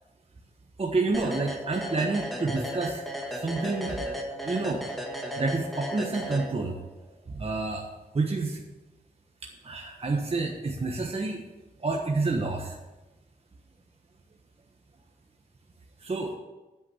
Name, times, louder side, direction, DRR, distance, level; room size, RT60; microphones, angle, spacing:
voice 1, 0.8-3.0 3.4-4.8 5.4-6.8 7.3-7.9 8.1-8.6 9.6-11.4 11.8-12.8 16.0-16.3, right 3 dB, 40° right, 0 dB, 1.3 m, -29 dB
sound 1, 1.1-6.9, equal, ahead, 1.9 m, -35 dB
9.6 x 8.1 x 7.2 m, 1.1 s
wide cardioid pair, 95°, 16 cm